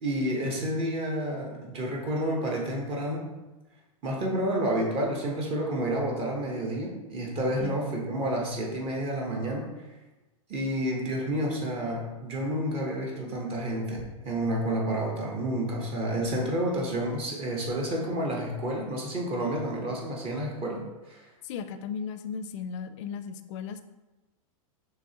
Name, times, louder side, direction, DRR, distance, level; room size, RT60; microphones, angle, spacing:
voice 1, 0.0-3.3 4.0-9.9 10.5-21.3, right 1 dB, 30° right, -1 dB, 1.0 m, -30 dB
voice 2, 21.4-23.8, left 6 dB, 60° left, 10 dB, 0.4 m, -36 dB
6.2 x 2.8 x 2.9 m, 1.1 s
hypercardioid pair, 130°, 18 cm